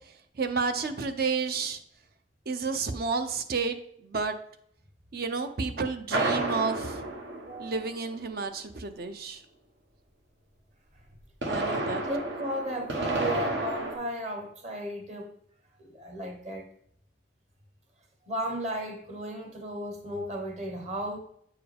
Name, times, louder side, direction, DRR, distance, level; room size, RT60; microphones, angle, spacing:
voice 1, 0.4-1.8 2.5-4.4 5.1-7.0 7.6-9.4 11.5-12.0, right 4 dB, 55° right, 0.6 m, -31 dB
sound 1, 6.1-8.2 11.1-13.9, right 2 dB, 80° right, 1.3 m, -31 dB
voice 2, 7.4-7.9 12.0-15.3 15.8-16.6 18.3-21.2, equal, 40° right, 1.2 m, -35 dB
8.3 x 4.7 x 3.4 m
head